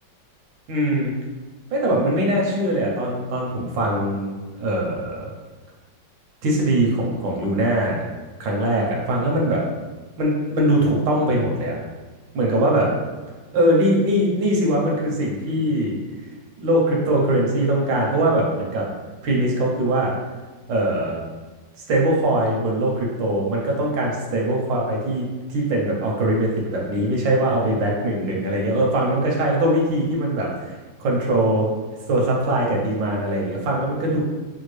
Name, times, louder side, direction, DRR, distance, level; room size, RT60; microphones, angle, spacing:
voice 1, 0.7-1.1 1.7-5.3 6.4-8.0 8.4-9.6 10.2-11.8 12.3-12.9 13.5-15.9 16.6-18.9 19.2-20.1 20.7-21.2 21.9-31.7 32.1-34.2, right 1 dB, 85° right, -2 dB, 1.6 m, -21 dB
6.3 x 2.4 x 3.1 m, 1.3 s
omnidirectional pair, 2.0 m